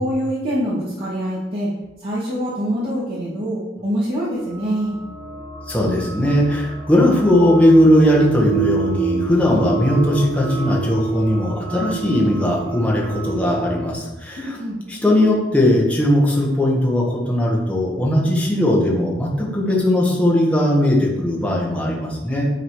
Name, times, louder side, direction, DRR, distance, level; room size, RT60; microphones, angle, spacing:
voice 1, 0.0-1.7 2.0-5.0 14.4-14.8, equal, 55° right, -11 dB, 2.3 m, -24 dB
sound 1, 4.4-13.9, right 4 dB, 60° left, 1.4 m, -28 dB
voice 2, 5.7-14.6 14.9-22.5, left 1 dB, 5° left, -3 dB, 1.4 m, -18 dB
9.3 x 3.9 x 4.8 m, 1.0 s
head